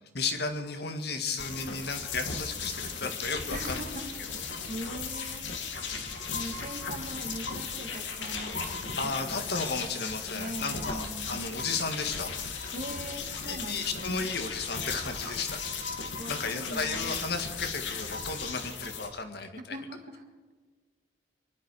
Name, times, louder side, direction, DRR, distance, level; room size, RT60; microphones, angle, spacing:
voice 1, 0.1-3.8 9.0-12.3 13.5-19.8, left 4 dB, 55° left, 6 dB, 1.7 m, -34 dB
sound 1, 1.4-19.1, left 5 dB, 75° left, 2.2 m, -36 dB
voice 2, 3.5-5.4 6.3-9.1 9.5-10.0 10.3-11.5 12.7-14.3 16.2-17.1 19.7-20.2, right 1 dB, 40° right, 3 dB, 2.3 m, -41 dB
24.0 x 11.5 x 4.9 m, 1.5 s
head